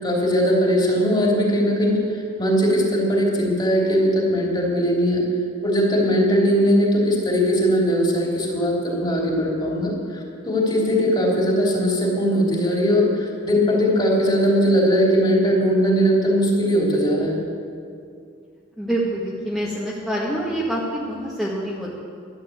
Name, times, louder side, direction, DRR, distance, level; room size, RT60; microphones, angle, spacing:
voice 1, 0.0-2.0 2.4-5.2 5.6-9.9 10.4-17.4, equal, 25° left, -3 dB, 3.3 m, -19 dB
voice 2, 18.8-21.9, right 1 dB, ahead, -7 dB, 1.8 m, -26 dB
13.5 x 11.5 x 7.9 m, 2.3 s
head